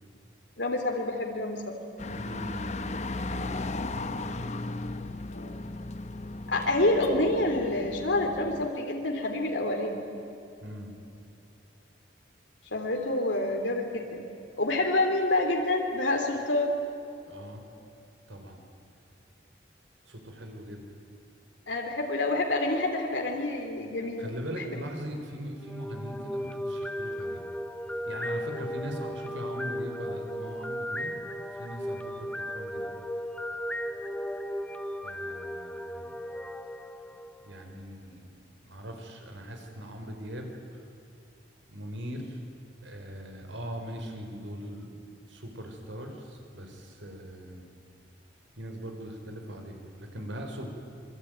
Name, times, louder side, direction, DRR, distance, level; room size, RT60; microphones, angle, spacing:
voice 1, 0.6-1.8 5.3-5.5 6.5-10.1 12.7-14.3 14.6-16.7 21.7-24.3 24.6-24.8, left 2 dB, 75° left, 2 dB, 3.1 m, -28 dB
sound 1, 2.0-8.7, left 2 dB, 35° left, 1.0 m, -36 dB
voice 2, 2.1-4.6 10.6-11.0 17.3-17.6 18.3-18.6 20.0-20.9 24.2-27.4 28.1-31.1 31.6-32.9 35.0-36.2 37.4-38.2 38.6-40.8 41.7-42.4 42.8-44.9 45.3-47.7 48.6-50.7, equal, 80° right, 4 dB, 4.9 m, -40 dB
sound 2, 25.6-37.7, equal, 5° left, 0.9 m, -36 dB
26.5 x 24.0 x 9.4 m, 2.6 s
head